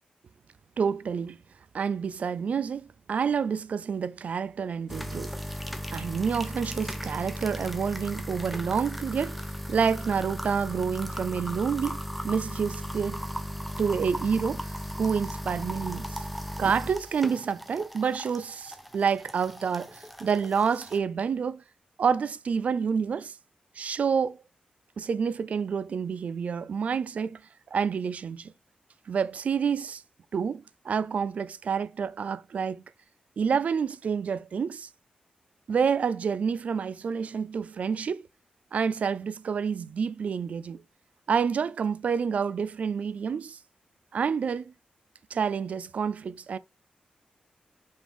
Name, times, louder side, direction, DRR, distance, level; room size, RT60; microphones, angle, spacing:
voice 1, 0.8-1.4 1.7-5.3 5.9-9.4 9.7-13.3 13.8-16.2 16.6-21.6 22.0-23.4 23.8-24.4 25.0-27.4 27.7-28.5 29.1-30.0 30.3-32.8 33.4-34.9 35.7-38.3 38.7-40.8 41.3-43.6 44.1-44.7 45.3-46.6, right 6 dB, 60° right, 0.4 m, -28 dB
sound 1, 4.9-21.0, equal, ahead, 0.8 m, -37 dB
5.3 x 5.2 x 3.4 m
wide cardioid pair, 120°, 3 cm